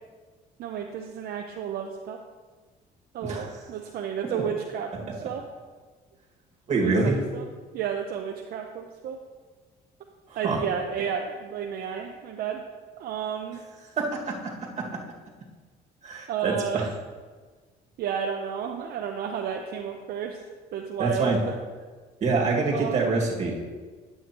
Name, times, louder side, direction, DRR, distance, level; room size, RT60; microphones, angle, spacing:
voice 1, 0.6-2.2 3.1-5.4 6.8-7.5 7.7-9.2 10.3-12.6 13.0-13.6 16.3-16.9 18.0-20.4 20.7-21.9 22.7-23.2, right 8 dB, 65° right, 2 dB, 0.7 m, -32 dB
voice 2, 3.2-3.5 4.3-4.4 6.7-7.2 10.3-10.6 14.0-15.0 16.0-16.9 21.0-21.4 22.2-23.6, right 3 dB, 40° right, -2 dB, 2.0 m, -26 dB
10.0 x 7.8 x 3.0 m, 1.4 s
cardioid pair, 110°, 17 cm